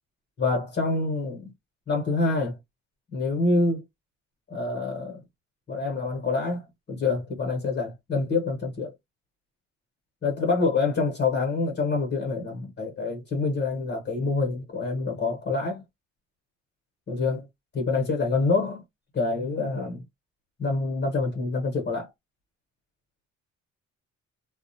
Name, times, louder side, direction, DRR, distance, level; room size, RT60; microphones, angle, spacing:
voice 1, 0.4-1.5 1.9-2.6 3.1-3.8 4.5-5.2 5.7-8.9 10.2-15.8 17.1-17.4 17.7-18.8 19.1-20.0 20.6-22.1, left 3 dB, 35° left, 1.0 m, -26 dB
2.3 x 2.0 x 2.7 m
cardioid pair, 90°, 30 cm